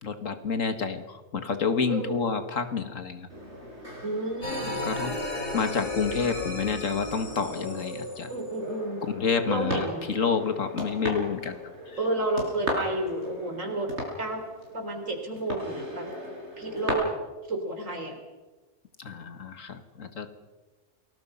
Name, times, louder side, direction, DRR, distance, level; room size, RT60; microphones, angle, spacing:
voice 1, 0.0-3.3 4.8-5.1 5.5-8.3 9.0-12.0 19.0-20.4, left 5 dB, 90° left, 9 dB, 2.1 m, -29 dB
voice 2, 1.9-2.2 4.0-4.7 8.3-9.0 9.5-10.1 12.0-13.9 14.2-14.4 14.7-16.1 16.6-17.1 17.5-18.2, right 2 dB, 85° right, 4 dB, 4.4 m, -31 dB
sound 1, 3.3-16.9, equal, 60° right, 6.4 m, -38 dB
sound 2, 4.4-9.3, left 1 dB, 70° left, 8.0 m, -35 dB
28.5 x 19.5 x 5.6 m, 1.2 s
omnidirectional pair, 1.3 m